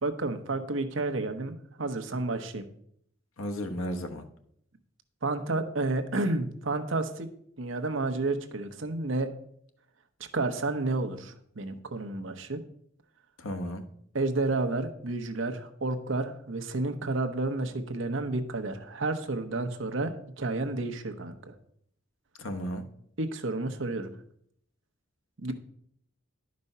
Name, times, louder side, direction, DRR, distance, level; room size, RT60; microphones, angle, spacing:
voice 1, 0.0-2.7 5.2-7.3 7.6-9.3 10.3-12.6 14.1-21.5 23.2-24.1 25.4-25.5, right 2 dB, 65° right, 6 dB, 0.9 m, -31 dB
voice 2, 3.4-4.2 13.4-13.8 22.4-22.8, equal, 85° left, 6 dB, 1.1 m, -34 dB
11.0 x 5.2 x 5.5 m, 0.69 s
head